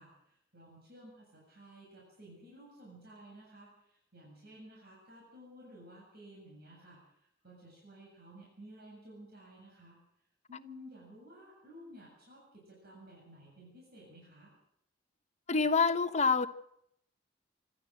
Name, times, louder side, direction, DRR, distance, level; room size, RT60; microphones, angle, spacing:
voice 1, 0.0-10.0 10.5-14.5, equal, 55° right, 8.0 m, -54 dB
voice 2, 15.5-16.5, left 4 dB, 40° left, 1.1 m, -26 dB
27.0 x 13.5 x 7.7 m
head